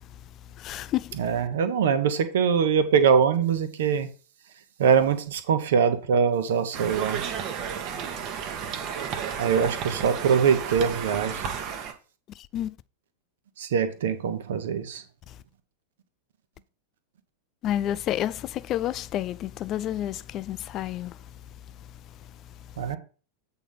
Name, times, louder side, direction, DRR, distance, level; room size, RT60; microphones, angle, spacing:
voice 1, 0.6-1.2 12.4-12.8 15.3-15.4 17.6-21.2, left 12 dB, 35° left, 0.4 m, -30 dB
voice 2, 1.2-4.1 4.8-7.2 9.4-11.4 13.6-15.0 22.8-23.0, right 6 dB, 60° right, 1.1 m, -23 dB
Conversation, 6.7-11.9, right 7 dB, 40° right, 1.1 m, -32 dB
8.3 x 3.9 x 5.6 m
figure-of-eight pair, 90°, 0 cm